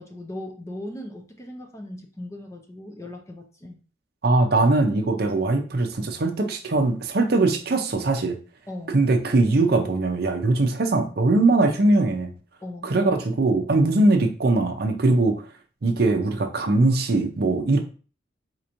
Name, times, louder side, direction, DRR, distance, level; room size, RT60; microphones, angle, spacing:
voice 1, 0.0-3.8 8.7-9.0 12.6-12.9 15.1-15.2, left 1 dB, 15° left, 3 dB, 0.5 m, -38 dB
voice 2, 4.2-8.4 8.9-12.3 12.8-15.4 15.8-17.8, right 2 dB, 55° right, 5 dB, 0.5 m, -21 dB
4.3 x 3.0 x 2.5 m, 0.37 s
head